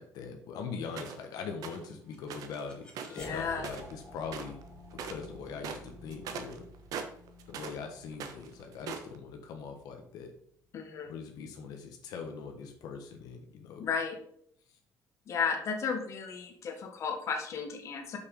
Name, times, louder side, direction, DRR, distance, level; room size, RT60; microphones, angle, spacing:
voice 1, 0.0-4.6 5.0-6.6 7.5-10.3 11.0-13.8, left 5 dB, 80° left, 4 dB, 1.3 m, -42 dB
sound 1, 1.0-1.3 1.6-1.9 2.3-2.6 2.9-4.0 4.3-4.6 4.9-5.3 5.6-7.8 8.1-9.2, right 6 dB, 75° right, 1.1 m, -41 dB
sound 2, 1.9-10.6, left 1 dB, 15° left, 1.9 m, -52 dB
voice 2, 3.1-3.7 10.7-11.1 13.8-14.2 15.3-18.2, left 6 dB, 50° left, 3 dB, 1.5 m, -34 dB
6.3 x 5.8 x 5.4 m, 0.66 s
cardioid pair, 140°, 6 cm